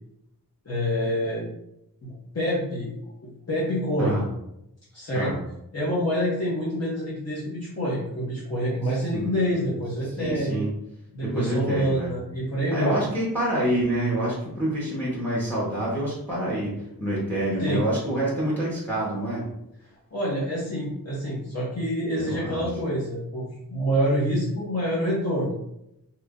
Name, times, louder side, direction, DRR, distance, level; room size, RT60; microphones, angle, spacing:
voice 1, 0.6-1.5 2.0-2.9 3.2-4.2 4.9-5.3 5.7-10.6 11.1-13.0 17.6-17.8 20.1-25.5, equal, 45° left, -7 dB, 0.9 m, -27 dB
voice 2, 9.1-9.7 10.1-10.7 11.2-12.1 12.7-19.4 22.1-22.6, right 1 dB, 5° left, -6 dB, 1.0 m, -27 dB
2.9 x 2.5 x 3.5 m, 0.82 s
wide cardioid pair, 125°, 36 cm